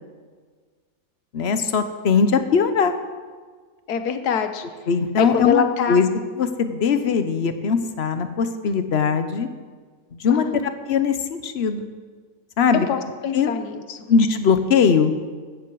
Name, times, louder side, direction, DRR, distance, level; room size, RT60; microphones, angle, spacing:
voice 1, 1.3-2.9 4.9-6.1 6.3-9.5 10.1-11.8 12.6-12.9 13.3-13.5 14.1-15.1, left 6 dB, 45° left, 9 dB, 1.0 m, -20 dB
voice 2, 3.9-4.6 5.2-6.0 10.3-10.6 12.9-13.8, left 7 dB, 70° left, 8 dB, 1.5 m, -24 dB
15.5 x 13.0 x 4.8 m, 1.6 s
omnidirectional pair, 1.8 m